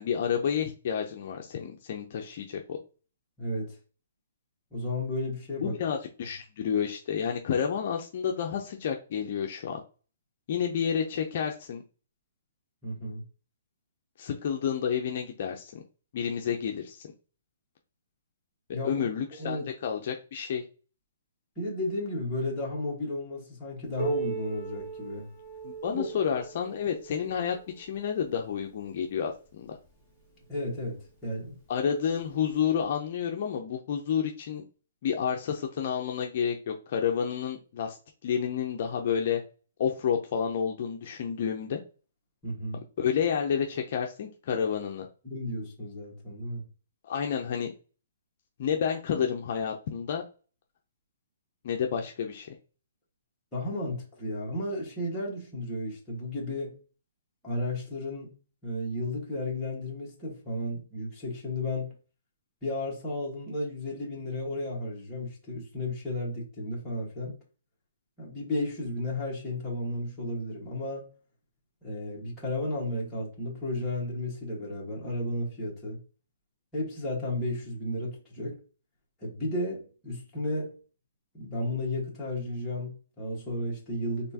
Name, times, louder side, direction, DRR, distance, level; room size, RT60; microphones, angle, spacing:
voice 1, 0.0-2.8 5.6-9.8 10.5-11.8 14.2-15.8 16.1-17.1 18.8-20.6 25.6-29.8 31.7-34.6 35.0-38.0 38.2-39.4 39.8-41.8 43.0-45.1 47.0-47.7 48.6-50.2 51.6-52.5, left 7 dB, 40° left, 0.5 m, -30 dB
voice 2, 3.4-3.8 4.7-5.8 12.8-13.2 18.7-19.7 21.6-25.3 25.9-26.0 30.5-31.5 42.4-42.8 45.2-46.6 53.5-56.8 57.4-58.3 58.6-61.9 62.6-67.3 68.2-71.1 71.8-76.0 76.7-78.6 79.2-80.8 81.3-84.3, left 1 dB, 5° left, 1.5 m, -33 dB
Piano, 24.0-29.3 30.2-30.3 30.8-30.9 31.7-31.8 32.8-32.9, right 6 dB, 10° right, 1.1 m, -38 dB
4.3 x 3.1 x 2.8 m
hypercardioid pair, 165°, 0 cm